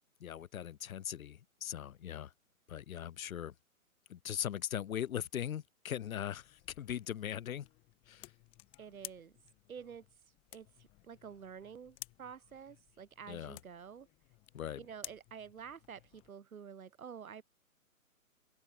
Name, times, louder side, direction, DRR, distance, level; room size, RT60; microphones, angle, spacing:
voice 1, 0.2-2.3 2.7-3.5 4.1-7.7 8.1-8.3 13.3-13.6 14.5-14.8, left 10 dB, 75° left, 0.5 m, -40 dB
sound 1, 5.9-16.3, left 21 dB, 15° left, 1.0 m, -55 dB
voice 2, 8.8-9.4 9.7-10.1 10.5-14.1 14.8-17.4, right 7 dB, 75° right, 1.0 m, -49 dB
figure-of-eight pair, 140°, 42 cm